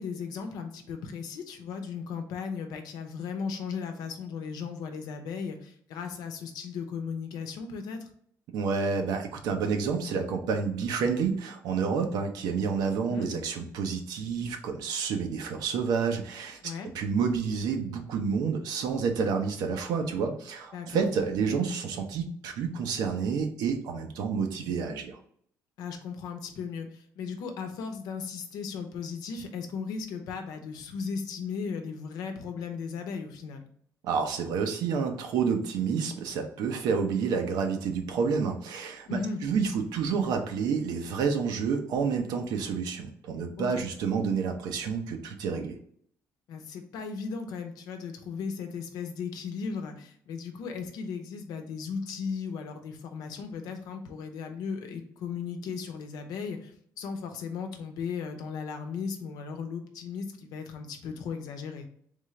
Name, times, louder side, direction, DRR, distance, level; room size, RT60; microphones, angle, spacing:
voice 1, 0.0-8.0 13.1-13.3 16.6-16.9 20.7-21.0 25.8-33.7 39.1-39.4 43.6-43.8 46.5-61.9, left 5 dB, 85° left, 6 dB, 0.8 m, -36 dB
voice 2, 8.5-16.6 16.9-25.2 34.0-45.8, right 5 dB, 85° right, 4 dB, 0.8 m, -29 dB
3.6 x 3.3 x 3.7 m, 0.63 s
cardioid pair, 130°, 7 cm